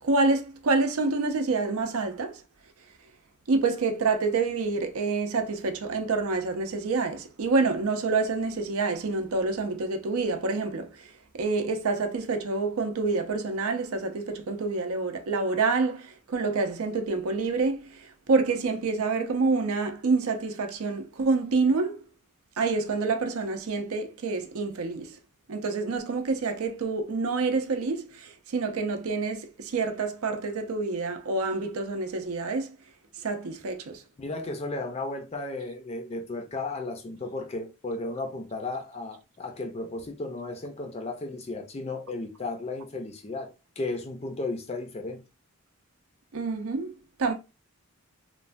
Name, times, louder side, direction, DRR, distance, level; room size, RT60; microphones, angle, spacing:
voice 1, 0.0-2.4 3.5-22.0 22.6-25.2 25.5-32.7 33.2-34.0 46.3-47.3, right 3 dB, 75° right, 0.5 m, -27 dB
voice 2, 34.2-43.5 43.8-45.2, left 2 dB, 30° left, 0.4 m, -34 dB
3.1 x 2.1 x 2.5 m
head